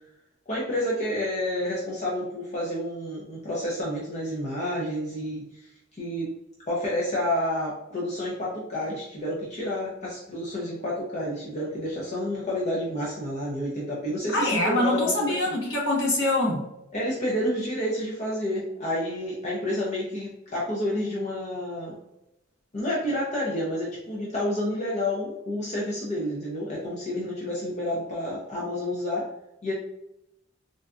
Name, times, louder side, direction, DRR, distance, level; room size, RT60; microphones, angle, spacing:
voice 1, 0.5-6.3 6.7-15.6 16.9-22.0 22.7-29.3 29.6-29.7, left 1 dB, 35° left, -5 dB, 0.6 m, -29 dB
voice 2, 14.3-16.6, left 1 dB, 65° left, -4 dB, 1.1 m, -24 dB
3.8 x 2.3 x 2.4 m, 0.87 s
head